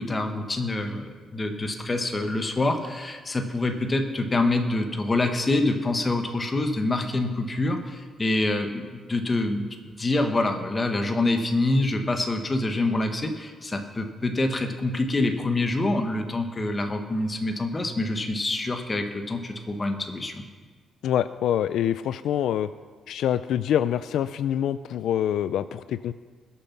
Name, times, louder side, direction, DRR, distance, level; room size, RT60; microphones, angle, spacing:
voice 1, 0.0-9.6 10.0-20.4, left 2 dB, 20° left, 5 dB, 1.2 m, -26 dB
voice 2, 21.0-22.7 23.1-26.1, left 10 dB, 80° left, 13 dB, 0.4 m, -25 dB
20.0 x 7.1 x 5.8 m, 1.5 s
cardioid pair, 145°, 0 cm